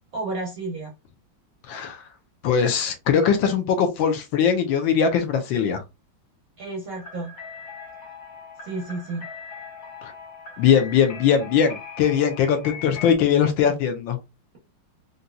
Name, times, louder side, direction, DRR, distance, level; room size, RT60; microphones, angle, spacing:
voice 1, 0.1-0.9 6.6-7.3 8.6-9.3, right 2 dB, 60° right, 0.9 m, -31 dB
voice 2, 1.7-2.0 2.4-5.8 10.0-10.1 10.6-14.2, left 7 dB, 75° left, 1.3 m, -21 dB
sound 1, 6.9-13.2, left 6 dB, 45° left, 1.4 m, -40 dB
4.0 x 2.6 x 2.3 m
omnidirectional pair, 2.3 m